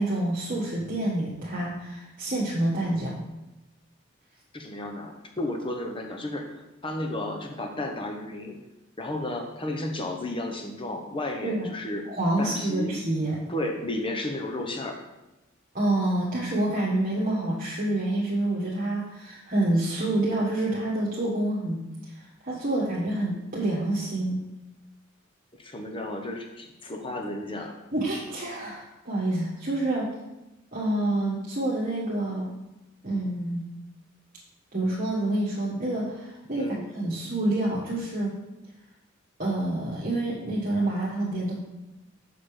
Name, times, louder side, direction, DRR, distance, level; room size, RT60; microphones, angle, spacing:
voice 1, 0.0-3.1 11.4-11.7 12.1-13.5 15.7-24.4 27.9-30.1 30.7-32.5 33.0-33.6 34.7-38.3 39.4-41.5, right 1 dB, 45° right, -7 dB, 1.5 m, -27 dB
voice 2, 4.5-8.6 9.0-12.0 12.4-12.9 13.5-15.0 25.6-27.7 36.5-36.9, left 1 dB, 25° left, 2 dB, 1.0 m, -33 dB
6.7 x 6.0 x 5.0 m, 0.99 s
head